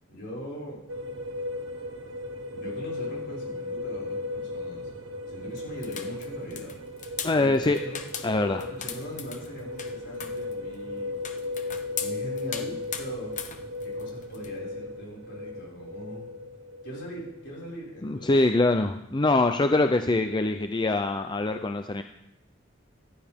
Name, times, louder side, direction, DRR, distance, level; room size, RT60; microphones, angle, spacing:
voice 1, 0.1-0.8 2.5-4.9 5.3-6.8 7.3-8.0 8.5-11.1 12.0-13.4 13.8-16.3 16.8-18.4, equal, 65° left, -4 dB, 5.6 m, -40 dB
sound 1, 0.9-18.1, left 2 dB, 90° right, 1.6 m, -36 dB
sound 2, 5.6-14.6, left 8 dB, 40° left, 0.9 m, -39 dB
voice 2, 7.2-7.8 8.2-8.6 18.0-22.0, left 2 dB, 25° left, 7 dB, 0.5 m, -24 dB
14.5 x 11.0 x 3.6 m, 0.83 s
head